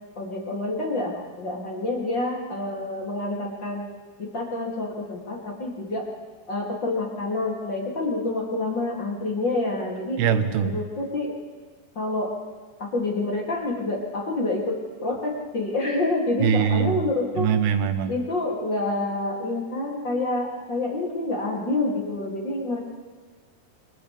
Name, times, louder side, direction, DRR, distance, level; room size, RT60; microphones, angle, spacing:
voice 1, 0.2-3.9 4.3-6.0 6.5-10.2 10.6-11.4 11.9-12.3 12.8-14.8 15.0-17.5 18.1-22.8, left 2 dB, 30° left, -3 dB, 3.2 m, -27 dB
voice 2, 10.2-10.8 16.4-17.0 17.4-18.1, right 8 dB, 85° right, 8 dB, 3.1 m, -22 dB
29.5 x 28.0 x 3.5 m, 1.4 s
omnidirectional pair, 4.3 m